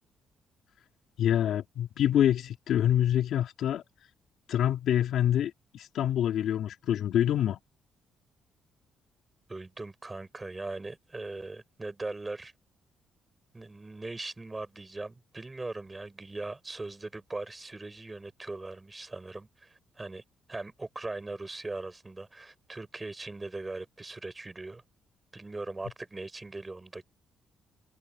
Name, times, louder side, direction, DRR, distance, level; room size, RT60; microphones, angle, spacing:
voice 1, 1.2-3.8 4.5-7.6, left 10 dB, 75° left, 3.5 m, -26 dB
voice 2, 9.5-12.5 13.5-20.2 20.5-24.8 25.3-27.0, right 2 dB, 20° right, 7.4 m, -40 dB
cardioid pair, 90°, 0 cm